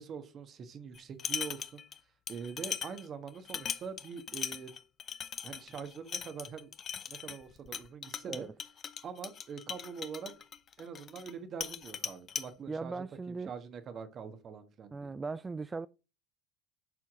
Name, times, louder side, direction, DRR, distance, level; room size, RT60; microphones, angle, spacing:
voice 1, 0.0-1.8 2.3-4.7 5.4-6.7 7.1-8.5 9.0-10.3 10.8-15.1, right 6 dB, 40° right, 1.5 m, -44 dB
sound 1, 0.9-2.0 2.3-11.3 11.6-12.5, left 8 dB, 40° left, 0.7 m, -39 dB
voice 2, 12.7-13.5 14.9-15.9, right 4 dB, 20° right, 0.4 m, -38 dB
11.0 x 4.5 x 3.8 m
hypercardioid pair, 70°, 0 cm